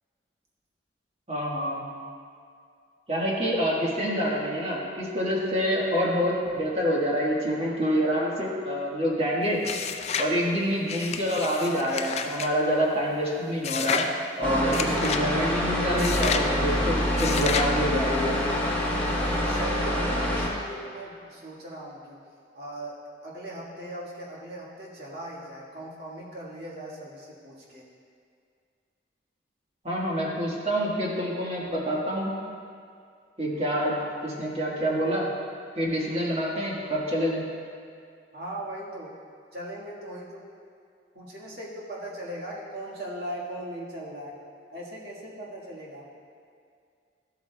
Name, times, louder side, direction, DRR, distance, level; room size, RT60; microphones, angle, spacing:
voice 1, 1.3-1.8 3.1-9.6 10.2-14.0 14.4-18.4 29.8-32.3 33.4-35.3 35.7-37.4, equal, 35° right, -4 dB, 1.4 m, -27 dB
sound 1, 9.6-10.3 10.9-12.5 13.6-14.1 14.7-15.2 16.0-16.5 17.2-17.7, left 6 dB, 35° left, 0.4 m, -30 dB
sound 2, 14.4-20.5, left 1 dB, 10° left, 1.2 m, -26 dB
voice 2, 19.2-22.2 22.5-27.9 38.3-39.1 39.5-40.4 41.1-44.3 44.7-46.1, right 1 dB, 60° right, -5 dB, 1.6 m, -39 dB
13.0 x 8.1 x 2.2 m, 2.3 s
head